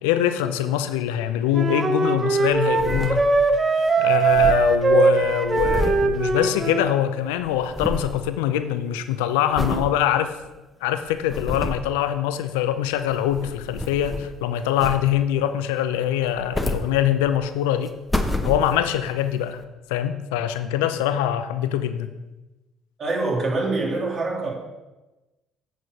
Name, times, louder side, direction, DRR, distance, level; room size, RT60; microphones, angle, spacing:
voice 1, 0.0-3.3 4.0-10.3 10.8-17.9 18.4-19.6 19.9-22.1, left 11 dB, 85° left, 10 dB, 0.5 m, -23 dB
Wind instrument woodwind instrument, 1.5-6.9, right 4 dB, 30° right, 0.9 m, -20 dB
sound 1, 2.5-3.6 3.9-6.9 7.2-8.2 8.7-9.0 9.5-9.9 10.4-10.5 11.1-11.9 12.9-14.4 14.8-15.4 16.2-17.5 17.9-19.1 19.6-19.7, left 1 dB, 10° left, 1.0 m, -29 dB
voice 2, 23.0-24.5, right 2 dB, 45° right, -2 dB, 2.7 m, -25 dB
8.6 x 4.6 x 6.6 m, 1.1 s
hypercardioid pair, 60°, 0 cm